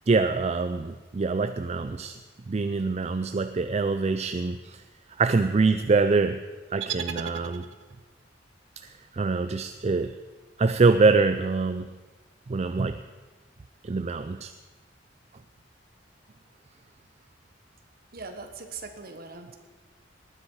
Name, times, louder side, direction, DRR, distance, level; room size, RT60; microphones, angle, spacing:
voice 1, 0.1-2.2 2.5-4.8 5.2-6.4 6.7-7.7 8.8-10.2 10.6-11.9 12.5-13.0 13.8-14.5, right 4 dB, 35° right, 10 dB, 0.4 m, -24 dB
sound 1, 6.8-8.1, right 8 dB, 80° right, 0.7 m, -35 dB
voice 2, 18.1-19.6, right 4 dB, 55° right, 6 dB, 1.4 m, -40 dB
19.5 x 10.0 x 4.7 m, 1.3 s
head